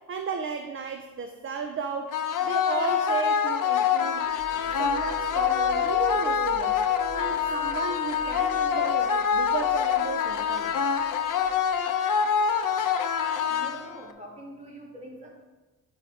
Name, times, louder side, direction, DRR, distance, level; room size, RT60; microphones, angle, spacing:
voice 1, 0.0-2.2 2.4-4.3 4.6-6.8 7.1-10.8, right 5 dB, 35° right, 5 dB, 0.5 m, -34 dB
sound 1, 2.1-14.1, left 7 dB, 60° left, 0.6 m, -25 dB
sound 2, 4.2-11.8, right 3 dB, 70° right, 1.4 m, -41 dB
voice 2, 13.1-15.3, equal, 20° right, -3 dB, 2.0 m, -43 dB
10.0 x 4.9 x 5.0 m, 1.2 s
wide cardioid pair, 165°, 36 cm